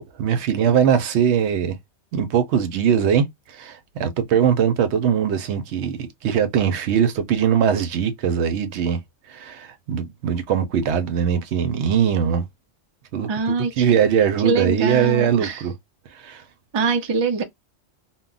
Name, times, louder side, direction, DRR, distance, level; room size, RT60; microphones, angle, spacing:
voice 1, 0.0-1.8 2.1-9.0 9.3-12.5 13.1-15.7 16.1-16.4, right 8 dB, 85° right, 0.9 m, -21 dB
voice 2, 13.3-13.9 14.4-15.6 16.7-17.4, right 4 dB, 40° right, 0.4 m, -23 dB
2.2 x 2.1 x 3.7 m
omnidirectional pair, 1.1 m